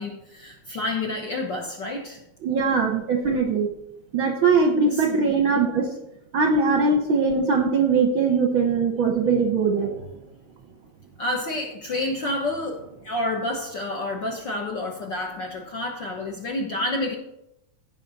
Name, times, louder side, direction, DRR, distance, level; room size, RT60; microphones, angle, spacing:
voice 1, 0.0-2.2 2.5-2.8 4.9-5.3 11.2-17.1, left 2 dB, 55° left, 0 dB, 1.3 m, -29 dB
voice 2, 2.4-3.7 4.1-5.9 6.3-9.9, right 4 dB, 65° right, 3 dB, 1.3 m, -21 dB
16.0 x 5.8 x 4.1 m, 0.82 s
omnidirectional pair, 3.4 m